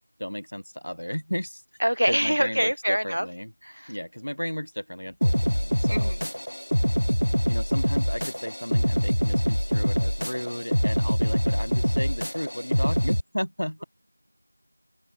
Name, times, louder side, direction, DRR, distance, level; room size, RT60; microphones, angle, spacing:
voice 1, 0.2-1.6 2.1-3.5 3.9-6.1 7.5-13.8, equal, 50° left, 4.9 m, -34 dB
voice 2, 1.8-3.3 3.6-3.9 5.9-6.2, equal, 55° right, 3.5 m, -25 dB
sound 1, 5.2-13.2, equal, 70° left, 2.8 m, -24 dB
figure-of-eight pair, 180°, 0 cm